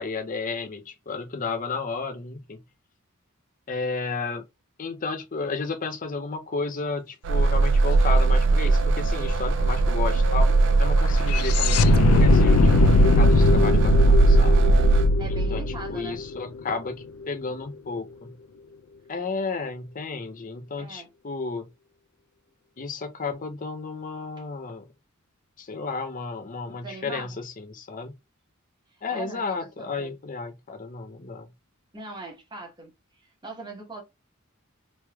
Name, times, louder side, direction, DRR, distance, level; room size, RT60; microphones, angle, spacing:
voice 1, 0.0-2.6 3.7-4.4 4.8-10.5 10.8-14.7 15.3-15.6 15.9-18.3 19.1-21.7 22.8-24.9 25.6-28.1 29.0-31.5, left 4 dB, 40° left, 0.6 m, -32 dB
sound 1, 7.2-15.1, right 3 dB, 60° right, 0.4 m, -20 dB
sound 2, 8.4-8.5 8.7-16.9, left 2 dB, 85° left, 0.3 m, -21 dB
voice 2, 15.2-16.2 20.8-21.1 26.7-27.4 28.9-30.2 31.9-32.9 33.2-34.0, right 2 dB, 20° right, 1.2 m, -40 dB
3.1 x 3.1 x 2.2 m
head